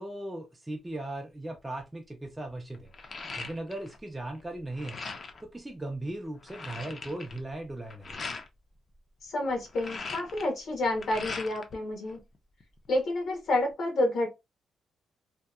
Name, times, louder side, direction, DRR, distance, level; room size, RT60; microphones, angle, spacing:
voice 1, 0.0-2.9 3.4-5.0 5.4-8.2, right 1 dB, 10° right, 0.4 m, -38 dB
sound 1, 1.5-1.8 2.2-4.0 4.3-5.5 5.9-6.0 6.2-8.5 9.5-11.7 12.1-13.0, left 4 dB, 40° left, 0.5 m, -40 dB
voice 2, 9.2-12.2 12.9-14.3, left 1 dB, 70° left, 0.9 m, -29 dB
2.7 x 2.2 x 2.2 m
cardioid pair, 110°, 0 cm